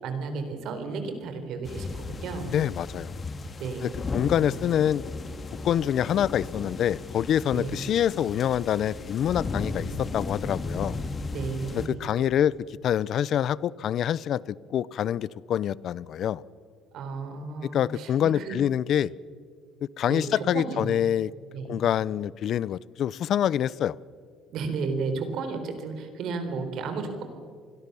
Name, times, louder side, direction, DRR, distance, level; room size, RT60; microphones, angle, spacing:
voice 1, 0.0-2.5 3.6-4.2 7.5-7.8 11.3-12.1 16.9-18.6 20.1-20.9 21.5-21.8 24.5-27.2, right 4 dB, 65° right, 7 dB, 4.1 m, -33 dB
sound 1, 1.6-11.9, left 3 dB, 30° left, 2.0 m, -35 dB
voice 2, 2.5-3.1 4.1-5.0 5.6-11.0 11.7-12.5 12.8-16.4 17.7-19.1 20.0-21.3 21.7-24.0, left 10 dB, 55° left, 21 dB, 0.5 m, -26 dB
27.5 x 21.0 x 7.0 m, 2.1 s
cardioid pair, 120°, 0 cm